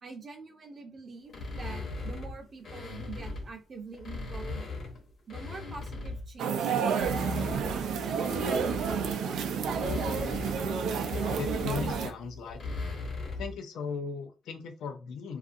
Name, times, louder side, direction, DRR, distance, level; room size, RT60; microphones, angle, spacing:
voice 1, 0.0-4.7 5.3-7.0 7.9-10.1, right 4 dB, 35° right, 5 dB, 0.6 m, -45 dB
sound 1, 1.3-3.5 3.9-6.3 6.8-13.6, left 3 dB, 45° left, 0.8 m, -38 dB
sound 2, 6.4-12.1, right 6 dB, 85° right, 0.4 m, -30 dB
voice 2, 11.4-12.8 13.4-15.4, left 5 dB, 80° left, 5 dB, 0.5 m, -37 dB
2.5 x 2.4 x 2.5 m, 0.31 s
cardioid pair, 155°, 0 cm